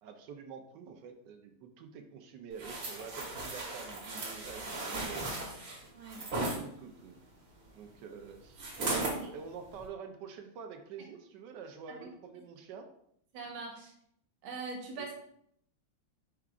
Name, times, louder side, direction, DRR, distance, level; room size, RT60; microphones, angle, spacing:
voice 1, 0.0-5.3 6.6-7.1 7.7-12.9 15.0-15.1, right 6 dB, 75° right, 5 dB, 1.1 m, -47 dB
sound 1, 2.6-6.6 8.6-9.2 9.7-9.9, right 2 dB, 55° right, 1.5 m, -36 dB
voice 2, 5.9-6.3 9.0-9.3 12.0-12.1 13.3-13.9 14.4-15.1, right 3 dB, 90° right, 1 dB, 1.8 m, -42 dB
4.7 x 4.7 x 2.4 m, 0.70 s
omnidirectional pair, 2.1 m